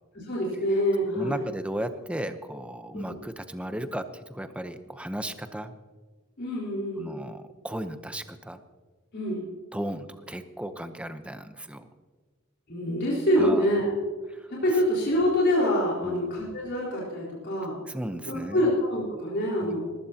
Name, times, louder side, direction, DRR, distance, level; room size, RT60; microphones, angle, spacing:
voice 1, 0.1-1.4 2.9-3.2 6.4-7.1 9.1-9.4 12.7-13.9 14.5-17.8 18.3-19.8, equal, 55° left, -6 dB, 4.2 m, -26 dB
voice 2, 1.1-5.7 7.0-8.6 9.7-11.9 13.4-13.7 14.3-14.8 16.0-16.3 17.9-18.7 19.6-19.8, right 1 dB, 5° right, 9 dB, 0.8 m, -35 dB
19.5 x 15.0 x 2.9 m, 1.4 s
head